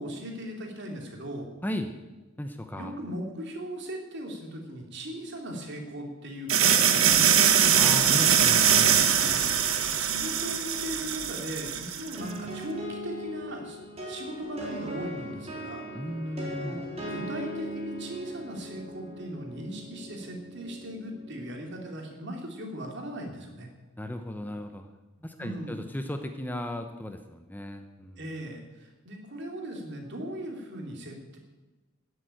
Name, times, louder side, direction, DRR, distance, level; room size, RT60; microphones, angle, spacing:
voice 1, 0.0-1.5 2.8-7.6 9.1-9.5 9.9-13.8 14.1-15.9 16.3-23.7 25.2-25.8 28.2-31.4, equal, 55° right, 2 dB, 2.9 m, -38 dB
voice 2, 2.4-2.9 7.8-9.4 15.9-16.8 24.0-24.9 25.2-28.2, left 1 dB, 10° left, 6 dB, 0.8 m, -35 dB
sound 1, 6.5-12.2, right 8 dB, 80° right, 1.3 m, -22 dB
sound 2, 12.2-21.8, equal, 30° right, 3.7 m, -40 dB
14.5 x 7.9 x 8.9 m, 1.2 s
head